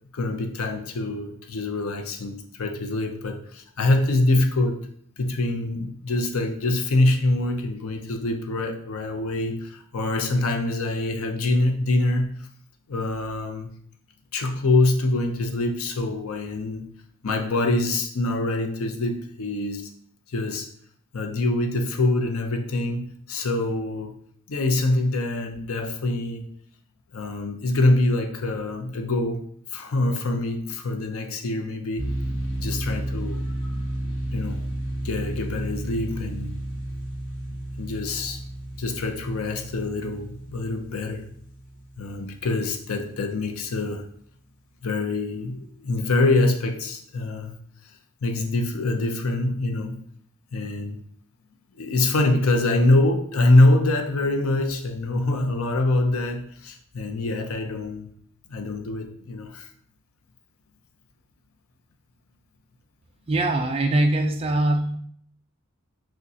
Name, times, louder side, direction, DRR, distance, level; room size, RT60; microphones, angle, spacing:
voice 1, 0.1-4.8 5.2-12.3 12.9-13.7 14.3-16.8 17.2-19.9 20.3-20.7 21.1-24.1 24.5-26.5 27.1-29.4 29.7-32.1 32.6-33.4 34.3-34.6 35.0-36.6 37.5-38.4 38.8-41.2 42.0-44.0 44.8-47.6 48.2-50.0 50.5-51.0 51.8-58.1 58.5-59.7, left 2 dB, 80° left, 4 dB, 0.6 m, -24 dB
sound 1, 32.0-42.8, right 1 dB, 65° left, 1.1 m, -32 dB
voice 2, 63.3-65.0, right 2 dB, 25° right, 4 dB, 0.3 m, -22 dB
6.2 x 2.2 x 2.7 m, 0.63 s
head